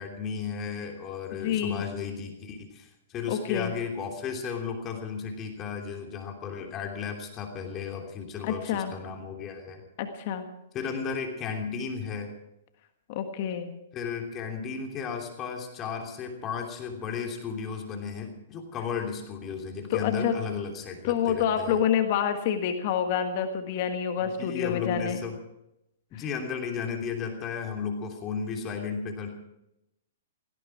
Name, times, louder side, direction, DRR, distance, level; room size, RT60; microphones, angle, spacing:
voice 1, 0.0-9.8 10.7-12.3 13.9-21.8 24.2-25.4 26.1-29.3, left 6 dB, 30° left, 2 dB, 3.2 m, -34 dB
voice 2, 1.3-1.8 3.3-3.7 8.4-8.9 10.0-10.4 13.1-13.7 19.9-20.3 21.0-25.2 26.1-26.2, left 8 dB, 50° left, 7 dB, 1.6 m, -28 dB
18.0 x 16.5 x 4.8 m, 0.86 s
hypercardioid pair, 115°, 0 cm